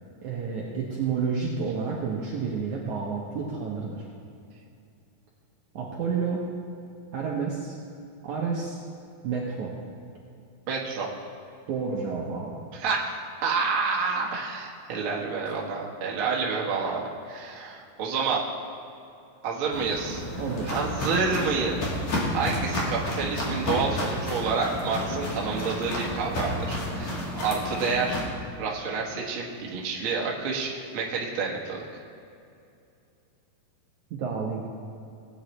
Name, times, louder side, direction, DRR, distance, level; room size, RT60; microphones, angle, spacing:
voice 1, 0.2-4.1 5.7-6.4 7.1-7.8 8.2-8.8 9.2-9.7 11.7-12.6 20.4-20.7 34.1-34.6, right 5 dB, 65° right, -3 dB, 2.1 m, -30 dB
voice 2, 10.7-11.1 12.7-13.1 13.4-18.5 19.4-20.2 20.6-28.2 28.6-31.8, right 4 dB, 50° right, -3 dB, 1.7 m, -29 dB
Walk footsteps, 19.7-28.2, left 1 dB, 50° left, 2.9 m, -31 dB
19.0 x 9.2 x 3.3 m, 2.6 s
omnidirectional pair, 4.4 m